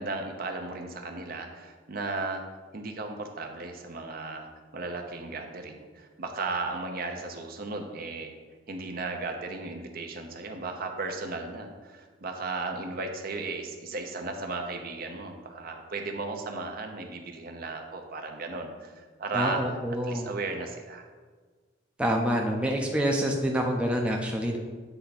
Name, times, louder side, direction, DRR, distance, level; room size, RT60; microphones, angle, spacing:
voice 1, 0.0-2.4 2.7-4.5 4.7-8.3 8.7-19.6 20.0-21.0, right 3 dB, 50° right, 4 dB, 0.7 m, -35 dB
voice 2, 19.3-20.3 22.0-24.6, equal, 5° right, 0 dB, 0.5 m, -27 dB
8.0 x 3.4 x 4.1 m, 1.4 s
head